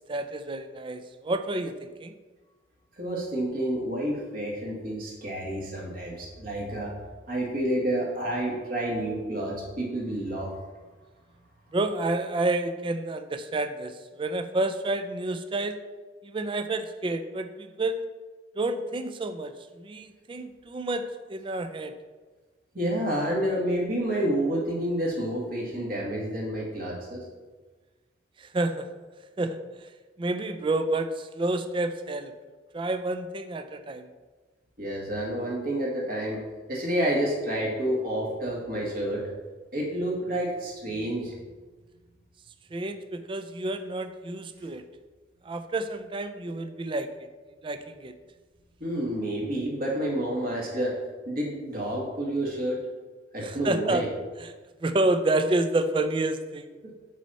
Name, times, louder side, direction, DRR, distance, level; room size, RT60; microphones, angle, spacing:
voice 1, 0.1-2.1 11.7-15.8 16.2-18.1 18.6-21.9 28.4-28.9 29.4-29.6 30.2-32.3 32.7-34.1 42.7-44.8 45.4-47.1 47.6-48.1 53.4-54.0 54.4-54.5 54.8-56.7, right 2 dB, 30° right, 10 dB, 0.4 m, -29 dB
voice 2, 3.0-6.9 7.3-10.6 22.7-27.2 34.8-36.4 36.7-39.3 39.7-41.3 48.8-51.0 51.3-52.8 53.3-54.1, right 1 dB, 55° right, -3 dB, 1.7 m, -29 dB
6.3 x 4.1 x 5.5 m, 1.3 s
head